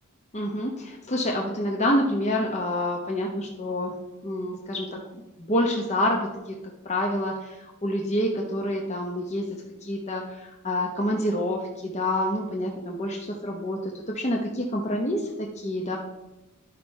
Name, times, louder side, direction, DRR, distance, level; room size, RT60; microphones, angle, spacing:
voice 1, 0.3-3.9 4.2-6.6 6.8-9.5 9.8-16.0, left 1 dB, 30° left, 0 dB, 0.8 m, -27 dB
11.0 x 5.3 x 4.5 m, 1.0 s
head